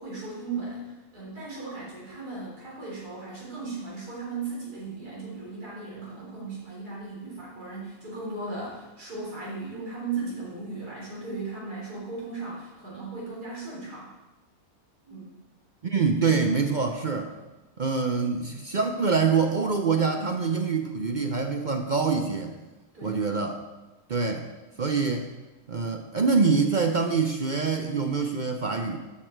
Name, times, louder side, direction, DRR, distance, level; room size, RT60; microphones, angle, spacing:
voice 1, 0.0-14.1 15.1-15.3 22.9-23.2, right 3 dB, 85° right, -6 dB, 4.3 m, -37 dB
voice 2, 15.8-17.3 17.8-22.6 23.0-23.6 24.1-24.5 24.8-25.3 25.7-29.0, right 4 dB, 50° right, 5 dB, 0.5 m, -25 dB
12.5 x 6.9 x 4.5 m, 1.1 s
omnidirectional pair, 1.6 m